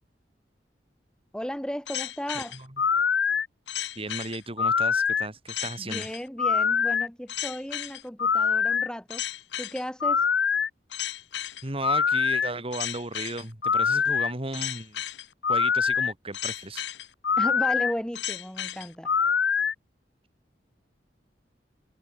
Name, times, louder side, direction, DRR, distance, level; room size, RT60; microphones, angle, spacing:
voice 1, 1.3-2.6 5.8-9.2 9.6-10.2 17.4-19.1, equal, 5° left, 3.0 m, -34 dB
sound 1, 1.9-19.7, left 6 dB, 80° left, 1.0 m, -26 dB
voice 2, 2.3-2.7 3.9-6.1 11.6-15.0 15.5-16.8, right 2 dB, 35° right, 3.3 m, -35 dB
head